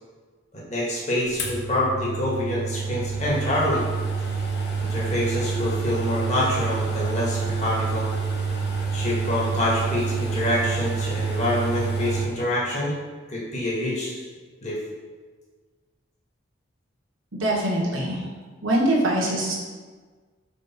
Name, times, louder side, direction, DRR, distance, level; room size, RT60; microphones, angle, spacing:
voice 1, 0.5-3.8 4.8-8.1 8.9-13.0 13.3-14.2 14.6-14.8, left 1 dB, 35° left, -5 dB, 1.9 m, -26 dB
sound 1, 1.4-12.3, right 4 dB, 55° left, 1.1 m, -28 dB
voice 2, 17.3-18.2 18.6-19.5, right 1 dB, 85° right, -3 dB, 1.5 m, -23 dB
5.2 x 4.7 x 6.0 m, 1.4 s
head